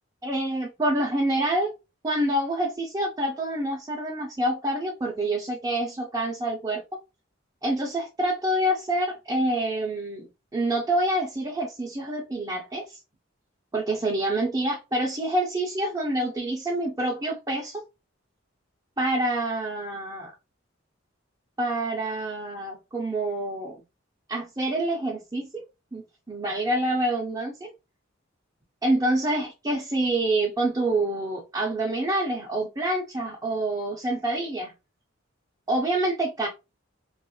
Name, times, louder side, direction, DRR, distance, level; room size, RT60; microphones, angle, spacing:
voice 1, 0.2-1.7 2.0-7.0 7.6-13.0 13.7-17.8 19.0-20.3 21.6-23.8 24.3-25.6 25.9-27.7 28.8-34.7 35.7-36.5, right 1 dB, 20° right, 0.6 m, -27 dB
3.0 x 2.4 x 2.8 m
head